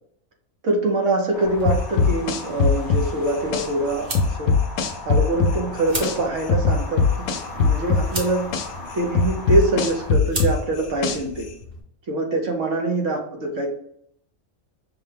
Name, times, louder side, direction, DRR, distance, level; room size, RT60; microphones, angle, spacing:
voice 1, 0.6-4.5 5.1-11.5 12.1-13.7, right 2 dB, 70° right, 2 dB, 1.2 m, -24 dB
sound 1, 1.3-10.1, left 2 dB, 20° left, 0.7 m, -38 dB
sound 2, 1.4-11.8, equal, 35° right, 1.0 m, -37 dB
sound 3, 1.7-3.7 4.2-6.2 6.5-8.7 9.2-11.4, left 4 dB, 80° left, 0.9 m, -19 dB
5.7 x 2.2 x 3.4 m, 0.69 s
omnidirectional pair, 1.4 m